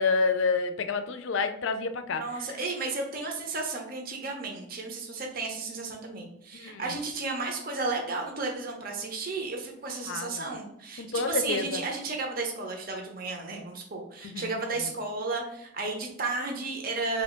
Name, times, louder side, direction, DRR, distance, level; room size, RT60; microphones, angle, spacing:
voice 1, 0.0-2.2 6.6-6.9 10.1-10.5 11.0-11.8 14.2-14.6, left 4 dB, 65° left, 9 dB, 0.4 m, -28 dB
voice 2, 2.1-17.2, right 3 dB, 45° right, 1 dB, 0.7 m, -33 dB
3.3 x 2.7 x 4.3 m, 0.76 s
head